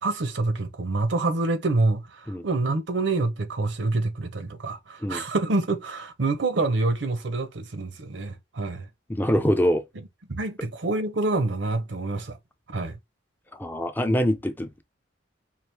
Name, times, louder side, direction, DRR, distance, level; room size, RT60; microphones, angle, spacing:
voice 1, 0.0-8.9 10.3-12.4 12.7-13.0, right 2 dB, 65° right, 0.7 m, -27 dB
voice 2, 9.1-9.8 13.5-14.8, equal, 10° left, 0.4 m, -24 dB
4.5 x 2.5 x 3.3 m
head